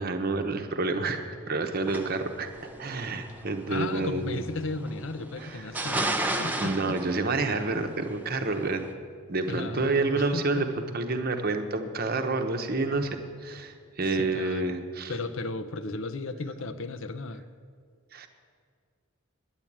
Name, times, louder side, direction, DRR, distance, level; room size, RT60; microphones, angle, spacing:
voice 1, 0.0-4.4 5.4-5.6 6.6-8.9 9.3-15.1 18.1-18.3, right 3 dB, 45° right, 6 dB, 0.9 m, -29 dB
sound 1, 1.8-8.9, right 1 dB, 10° right, 0.6 m, -34 dB
voice 2, 3.7-7.0 9.5-10.6 14.0-14.7 15.1-17.4, left 3 dB, 55° left, 11 dB, 0.6 m, -35 dB
11.0 x 8.9 x 8.7 m, 2.2 s
head